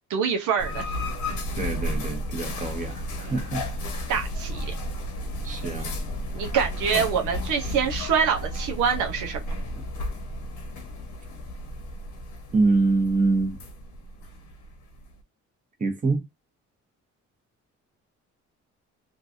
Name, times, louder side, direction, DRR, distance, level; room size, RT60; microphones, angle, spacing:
voice 1, 0.1-0.9 4.1-4.7 6.3-9.4, right 7 dB, 85° right, 0.8 m, -25 dB
sound 1, 0.6-15.2, left 1 dB, 80° left, 1.0 m, -33 dB
voice 2, 1.6-3.6 5.4-5.9 12.5-13.6 15.8-16.2, right 3 dB, 25° right, 1.0 m, -25 dB
3.1 x 2.5 x 2.6 m
cardioid pair, 90°, 30 cm